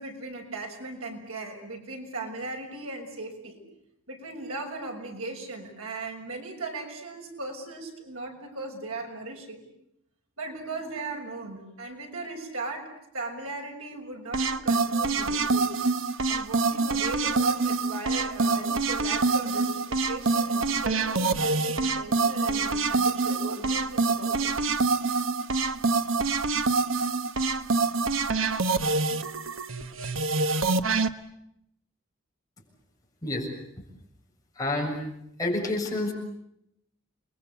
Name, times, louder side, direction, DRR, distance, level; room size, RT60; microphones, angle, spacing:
voice 1, 0.0-3.6 4.1-9.6 10.4-12.9 13.1-15.7 16.3-24.5, right 3 dB, 85° right, 2 dB, 6.5 m, -38 dB
sound 1, 14.3-31.1, right 3 dB, 70° right, 1.2 m, -26 dB
voice 2, 34.6-35.0 35.4-36.1, left 2 dB, 15° left, -1 dB, 7.1 m, -28 dB
29.5 x 22.5 x 8.3 m, 0.77 s
head